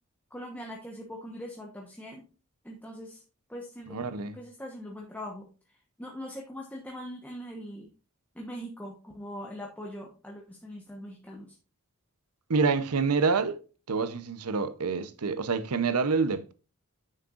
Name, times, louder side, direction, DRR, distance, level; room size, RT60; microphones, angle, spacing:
voice 1, 0.3-2.2 2.6-3.2 3.5-4.0 4.3-5.5 6.0-7.9 8.3-11.6, equal, 5° left, 1.1 m, -41 dB
voice 2, 3.9-4.4 12.5-13.6 13.9-16.5, right 4 dB, 85° right, 0.8 m, -27 dB
9.3 x 6.5 x 2.5 m
head